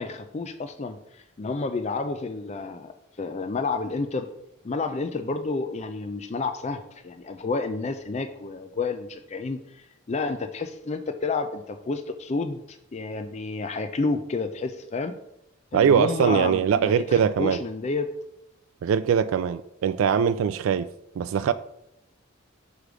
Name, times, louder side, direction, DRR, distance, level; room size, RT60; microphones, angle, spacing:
voice 1, 0.0-2.9 3.2-4.3 4.6-15.1 15.7-18.1, left 3 dB, 35° left, 8 dB, 0.4 m, -30 dB
voice 2, 15.7-17.6 18.8-20.9 21.2-21.5, right 7 dB, 85° right, 12 dB, 0.3 m, -22 dB
6.4 x 5.0 x 4.8 m, 0.82 s
head